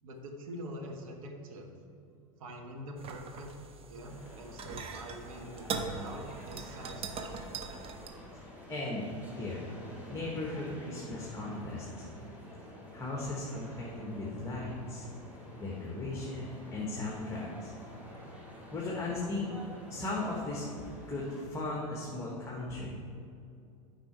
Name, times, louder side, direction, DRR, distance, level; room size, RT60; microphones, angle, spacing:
voice 1, 0.0-1.7 2.4-3.5 3.9-7.4, right 1 dB, 75° right, 3 dB, 1.3 m, -45 dB
sound 1, 3.0-8.1, right 4 dB, 30° right, 0.8 m, -41 dB
sound 2, 4.0-21.4, equal, 10° right, 1.9 m, -49 dB
voice 2, 8.7-9.0 9.3-9.6 10.1-12.1 12.9-15.1 15.6-17.7 18.7-19.5 19.9-20.6 21.1-23.0, left 2 dB, 15° left, -3 dB, 1.3 m, -37 dB
8.2 x 4.9 x 4.6 m, 2.5 s
hypercardioid pair, 100°, 18 cm